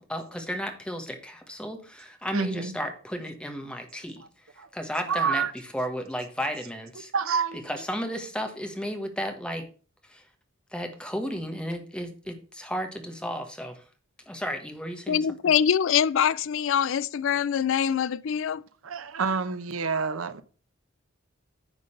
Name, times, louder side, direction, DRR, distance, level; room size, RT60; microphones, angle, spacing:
voice 1, 0.0-4.2 4.7-5.4 5.7-7.1 7.6-9.7 10.1-10.2 10.7-13.8 14.3-15.3, equal, 5° left, 1.3 m, -33 dB
voice 2, 2.3-2.7 4.6-4.7 5.1-5.5 7.1-7.6 18.8-20.4, right 5 dB, 85° right, 0.8 m, -28 dB
voice 3, 15.1-18.6, left 8 dB, 70° left, 0.4 m, -24 dB
9.8 x 4.0 x 6.5 m
head